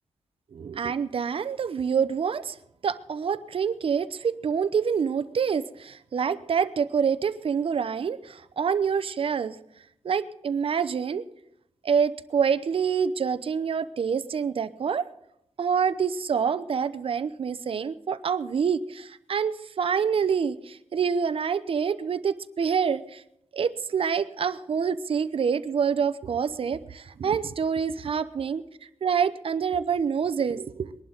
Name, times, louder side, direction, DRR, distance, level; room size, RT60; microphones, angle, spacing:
voice 1, 0.5-2.6 2.8-9.6 10.0-11.2 11.8-15.1 15.6-23.2 23.5-28.6 29.0-30.9, right 6 dB, 55° right, 13 dB, 0.7 m, -26 dB
21.5 x 11.5 x 3.9 m, 0.78 s
wide cardioid pair, 140°, 12 cm